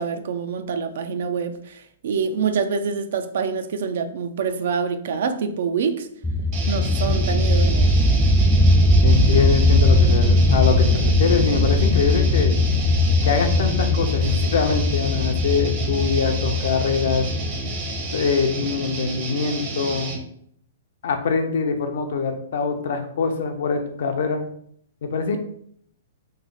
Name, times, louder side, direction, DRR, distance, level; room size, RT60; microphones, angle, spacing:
voice 1, 0.0-6.1 6.7-8.0, right 6 dB, 65° right, 9 dB, 0.4 m, -26 dB
sound 1, 6.2-18.6, left 1 dB, 10° left, 0.3 m, -19 dB
sound 2, 6.5-20.2, right 3 dB, 40° right, 0.7 m, -32 dB
voice 2, 9.0-12.5 13.2-17.3 18.1-20.1 21.0-24.4 25.0-25.4, left 5 dB, 70° left, 5 dB, 0.6 m, -23 dB
3.1 x 2.0 x 3.8 m, 0.66 s
hypercardioid pair, 150°, 0 cm